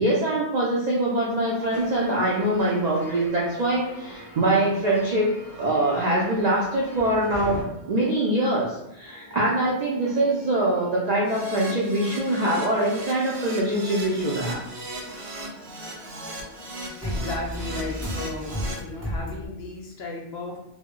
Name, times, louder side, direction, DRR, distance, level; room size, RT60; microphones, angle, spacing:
voice 1, 0.0-5.3 5.6-14.6, right 1 dB, 85° right, -4 dB, 0.3 m, -23 dB
sound 1, 1.1-19.5, left 1 dB, 20° right, 0.7 m, -40 dB
sound 2, 1.7-7.6, left 1 dB, 25° left, 0.6 m, -42 dB
Keyboard (musical), 11.2-18.7, right 1 dB, 65° right, 0.8 m, -37 dB
voice 2, 17.0-20.6, left 2 dB, 65° left, 0 dB, 0.7 m, -35 dB
2.1 x 2.0 x 3.6 m, 0.85 s
omnidirectional pair, 1.3 m